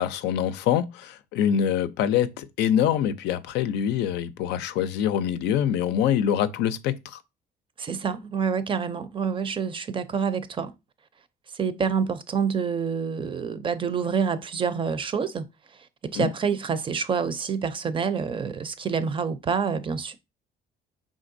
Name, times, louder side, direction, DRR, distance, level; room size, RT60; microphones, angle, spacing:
voice 1, 0.0-7.2 16.2-16.3, left 9 dB, 85° left, 0.5 m, -25 dB
voice 2, 7.8-10.7 11.5-15.4 16.0-20.1, right 6 dB, 30° right, 0.5 m, -27 dB
5.0 x 3.7 x 2.6 m
cardioid pair, 110°, 17 cm